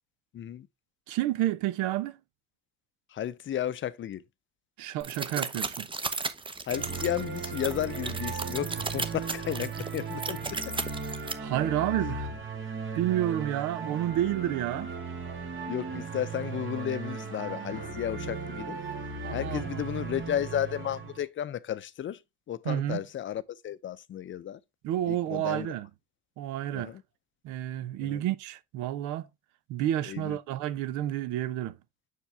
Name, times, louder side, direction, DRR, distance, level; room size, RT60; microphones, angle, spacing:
voice 1, 0.3-0.7 3.1-4.2 6.7-10.7 15.7-18.8 19.3-22.2 22.5-24.6 25.1-25.7 26.7-27.0 28.0-28.2 30.1-30.4, left 10 dB, 40° left, 0.6 m, -33 dB
voice 2, 1.1-2.2 4.8-5.9 11.4-12.3 12.9-14.9 19.2-19.8 22.6-23.0 24.8-25.9 26.4-27.0 27.4-29.3 29.7-31.8, right 13 dB, 75° right, 0.8 m, -30 dB
sound 1, 5.0-11.3, right 4 dB, 15° right, 0.8 m, -35 dB
sound 2, 6.7-21.2, right 4 dB, 40° right, 1.9 m, -37 dB
6.5 x 4.7 x 3.3 m
supercardioid pair, 80°, 30 cm